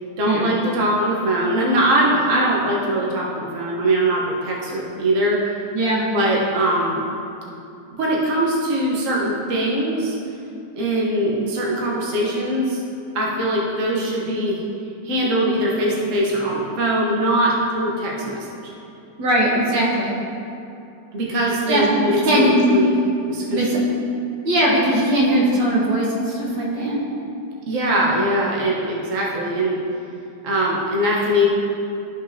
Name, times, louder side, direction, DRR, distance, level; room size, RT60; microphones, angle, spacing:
voice 1, 0.2-5.6 6.1-7.0 7.9-10.2 10.7-12.8 13.1-14.6 15.0-18.7 21.1-22.9 23.2-23.9 27.7-29.8 30.4-31.5, right 1 dB, 50° right, -4 dB, 1.4 m, -21 dB
voice 2, 5.7-6.1 19.2-20.2 21.7-22.6 23.5-23.8 24.4-27.0, right 1 dB, 80° right, -4 dB, 2.0 m, -20 dB
13.5 x 5.4 x 2.8 m, 2.7 s
omnidirectional pair, 1.9 m